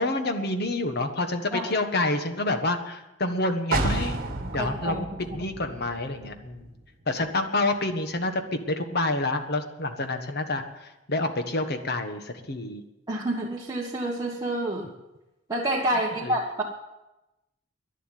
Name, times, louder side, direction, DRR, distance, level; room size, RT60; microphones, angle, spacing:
voice 1, 0.0-4.2 4.5-5.1 5.3-6.7 7.1-12.8 16.2-16.3, left 2 dB, 55° left, 7 dB, 1.4 m, -28 dB
sound 1, 3.7-7.5 7.8-7.9, right 2 dB, 50° right, 1.7 m, -32 dB
voice 2, 4.4-5.0 13.1-14.9 15.5-16.6, right 1 dB, 20° right, -3 dB, 1.3 m, -28 dB
11.0 x 11.0 x 9.2 m, 0.98 s
head